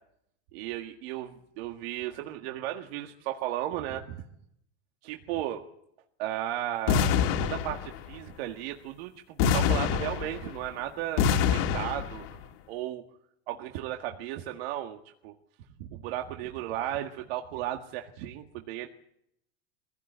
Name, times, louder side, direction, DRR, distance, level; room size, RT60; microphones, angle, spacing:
voice 1, 0.5-4.3 5.0-5.6 6.2-7.1 7.4-12.4 12.7-13.0 13.5-15.3 15.8-18.9, right 12 dB, 70° right, 4 dB, 1.9 m, -35 dB
sound 1, 6.9-8.1 9.4-10.7 11.2-12.3, left 7 dB, 65° left, 2.7 m, -26 dB
22.5 x 16.5 x 8.0 m, 0.76 s
supercardioid pair, 140°, 32 cm